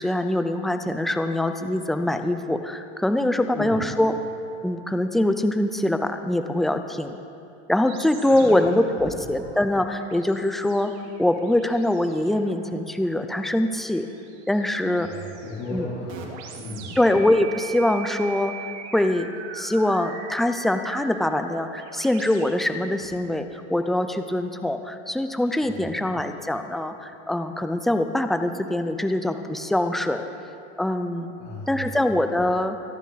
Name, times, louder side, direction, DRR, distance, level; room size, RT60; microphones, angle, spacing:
voice 1, 0.0-4.1 4.6-7.2 7.7-10.9 11.2-14.1 14.5-15.1 15.7-15.9 17.0-18.5 18.9-30.2 30.8-31.3 31.7-32.8, left 1 dB, ahead, 7 dB, 0.4 m, -23 dB
sound 1, 7.9-23.2, right 6 dB, 65° right, 2.6 m, -42 dB
voice 2, 8.2-8.8 15.0-16.2 16.5-16.9 25.4-25.8 31.4-31.8, left 3 dB, 50° left, -10 dB, 4.1 m, -35 dB
24.0 x 11.0 x 4.1 m, 2.7 s
supercardioid pair, 140°, 36 cm